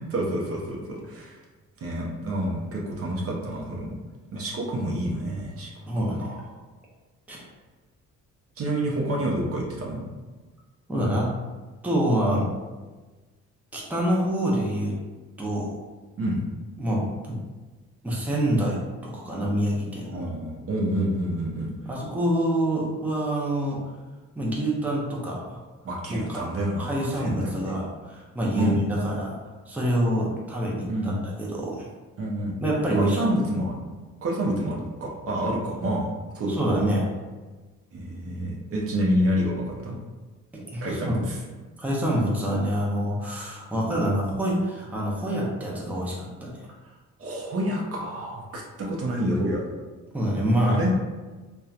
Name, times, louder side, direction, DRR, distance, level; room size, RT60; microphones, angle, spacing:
voice 1, 0.0-1.4 1.8-4.0 4.3-5.7 6.1-6.5 8.6-10.0 16.2-16.4 20.1-21.7 25.8-27.7 28.6-28.8 30.9-31.3 32.2-32.6 33.0-33.8 34.2-36.5 37.9-40.0 40.8-41.4 47.2-49.6 50.7-51.0, right 1 dB, 50° right, -2 dB, 0.6 m, -28 dB
voice 2, 5.9-6.3 7.3-7.4 10.9-11.3 11.8-12.5 13.7-15.0 15.4-15.8 16.8-17.4 18.0-20.3 21.9-23.8 24.4-25.6 26.1-26.4 26.8-29.4 29.7-31.1 31.4-31.9 32.6-33.3 36.5-37.1 40.5-41.2 41.8-46.5 50.1-50.8, right 1 dB, 5° right, -4 dB, 0.6 m, -26 dB
2.7 x 2.2 x 2.4 m, 1.3 s
cardioid pair, 90°, 30 cm